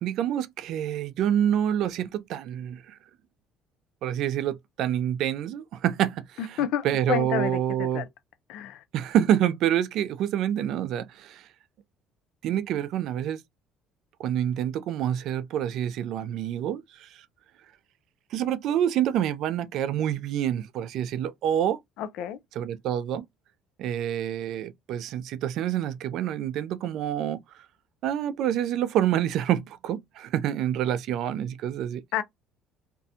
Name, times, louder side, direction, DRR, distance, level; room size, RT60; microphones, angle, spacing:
voice 1, 0.0-3.0 4.0-8.0 8.9-11.5 12.4-13.4 14.2-17.1 18.3-21.8 22.5-23.2 23.8-27.4 28.0-32.0, right 10 dB, 65° right, 0.3 m, -27 dB
voice 2, 6.4-8.1 8.5-8.8 22.0-22.4 32.1-32.2, left 10 dB, 75° left, 0.4 m, -30 dB
2.5 x 2.1 x 2.7 m
cardioid pair, 130°, 0 cm